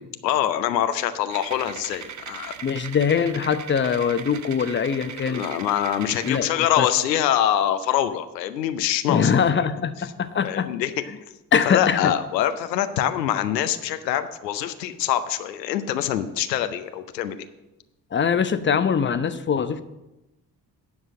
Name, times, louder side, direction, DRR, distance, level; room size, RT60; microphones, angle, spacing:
voice 1, 0.2-2.6 5.3-9.4 10.4-10.9 11.7-17.4, left 11 dB, 85° left, 11 dB, 0.6 m, -24 dB
sound 1, 1.3-6.4, right 7 dB, 35° right, 0.8 m, -39 dB
voice 2, 2.6-5.4 6.2-6.5 6.8-6.9 9.1-10.7 11.1-11.2 11.5-12.1 18.1-19.8, left 7 dB, 25° left, 12 dB, 0.7 m, -22 dB
9.5 x 6.1 x 7.1 m, 0.98 s
figure-of-eight pair, 40°, 49 cm